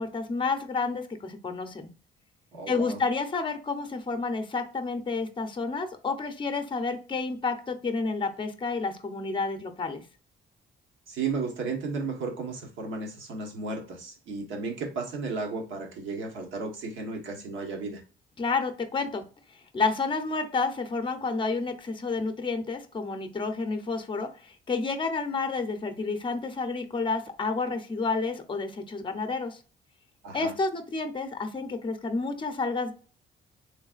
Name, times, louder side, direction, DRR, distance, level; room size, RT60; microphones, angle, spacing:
voice 1, 0.0-1.9 2.7-10.0 18.4-19.2 19.5-29.6 30.3-32.9, left 4 dB, 25° left, 7 dB, 0.7 m, -30 dB
voice 2, 2.5-3.0 11.1-18.0 30.2-30.5, right 4 dB, 75° right, 1 dB, 1.3 m, -34 dB
3.5 x 3.2 x 2.4 m, 0.37 s
cardioid pair, 90°, 20 cm